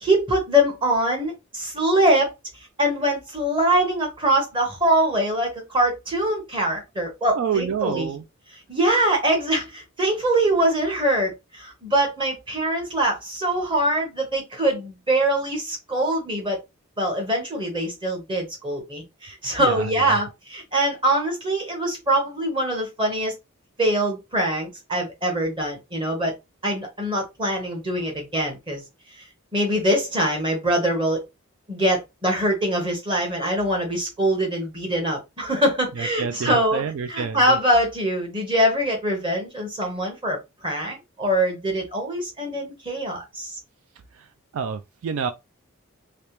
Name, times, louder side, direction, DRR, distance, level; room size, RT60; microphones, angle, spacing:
voice 1, 0.0-2.3 2.8-8.1 8.7-16.6 17.0-23.3 23.8-26.3 26.6-28.8 29.5-31.2 31.7-36.8 37.1-43.6, right 1 dB, 25° right, 1.1 m, -23 dB
voice 2, 7.4-8.2 19.6-20.2 36.0-37.6 44.1-44.3 44.5-45.3, right 6 dB, 75° right, 0.3 m, -28 dB
3.2 x 2.9 x 3.0 m
head